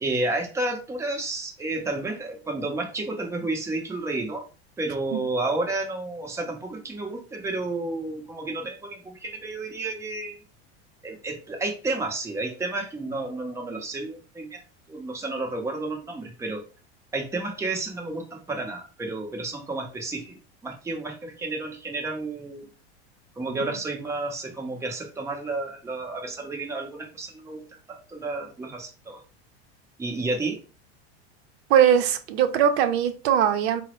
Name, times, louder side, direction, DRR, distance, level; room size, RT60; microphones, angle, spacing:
voice 1, 0.0-4.5 4.8-10.4 11.0-14.6 14.9-16.6 17.1-22.7 23.4-29.2 30.0-30.6, right 2 dB, 10° right, 2 dB, 0.6 m, -31 dB
voice 2, 31.7-33.8, right 9 dB, 75° right, 8 dB, 0.6 m, -20 dB
3.7 x 2.0 x 2.9 m, 0.35 s
supercardioid pair, 110°, 33 cm